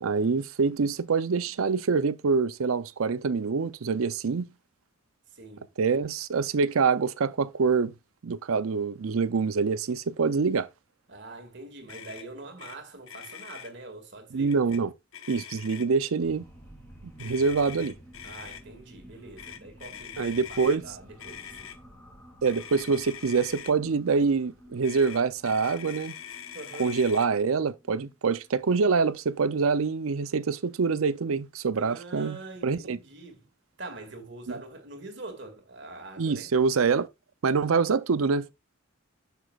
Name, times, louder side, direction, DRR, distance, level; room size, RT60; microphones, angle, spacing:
voice 1, 0.0-4.5 5.8-7.9 8.2-10.7 14.3-14.9 15.3-16.4 17.2-17.9 20.2-20.8 22.4-26.2 26.8-32.4 32.6-33.0 36.2-37.1 37.4-38.5, right 5 dB, 85° right, 0.5 m, -25 dB
voice 2, 5.3-5.7 11.1-14.6 18.2-21.7 26.5-27.0 31.7-33.5 33.8-36.5, right 2 dB, 55° right, 2.1 m, -44 dB
Motor vehicle (road), 11.9-12.3 12.6-12.8 13.0-13.7 14.5-14.8 15.1-16.0 17.2-18.6 19.4-20.8 21.2-21.8 22.4-23.7 24.8-27.3, left 9 dB, 80° left, 1.0 m, -43 dB
sound 1, 16.2-29.1, equal, 10° left, 2.8 m, -52 dB
10.0 x 7.0 x 2.4 m
head